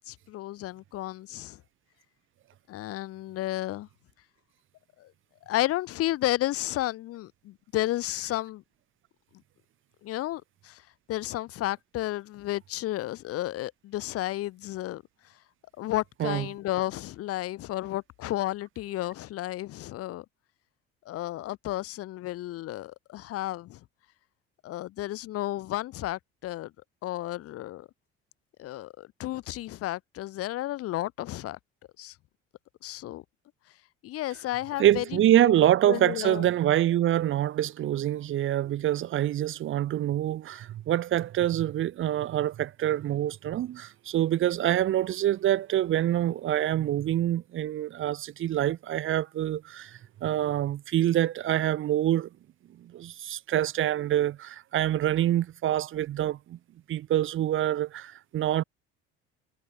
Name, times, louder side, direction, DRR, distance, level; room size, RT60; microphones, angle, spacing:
voice 1, 0.0-1.6 2.7-3.9 5.0-5.1 5.5-8.6 10.0-10.8 11.1-15.0 15.8-20.2 21.1-23.8 24.6-26.7 27.0-27.9 28.6-31.6 32.0-32.1 32.8-33.2 34.0-35.6 35.9-36.5, left 15 dB, 55° left, 0.7 m, -32 dB
voice 2, 34.8-52.3 52.9-56.6 56.9-58.6, right 12 dB, 45° right, 0.6 m, -26 dB
supercardioid pair, 80°, 29 cm